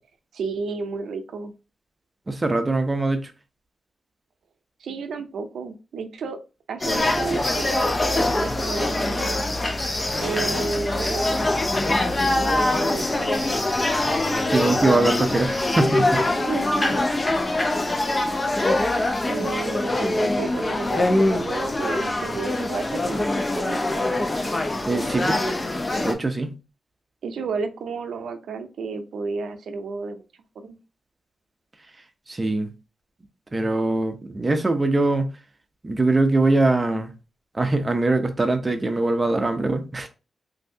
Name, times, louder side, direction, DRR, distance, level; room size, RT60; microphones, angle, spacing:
voice 1, 0.3-1.5 4.8-6.4 6.7-9.4 10.2-11.5 12.3-13.6 16.3-17.0 19.3-24.3 27.2-30.3 30.6-30.8, right 4 dB, 90° right, 0.4 m, -32 dB
voice 2, 2.3-3.3 14.5-16.2 24.8-25.4 26.0-26.5 32.3-32.7 33.5-35.3 35.8-37.1 37.5-40.1, right 2 dB, 25° right, 0.5 m, -22 dB
sound 1, 6.8-26.1, left 2 dB, 25° left, 0.5 m, -23 dB
3.1 x 2.7 x 2.6 m
wide cardioid pair, 100°, 0 cm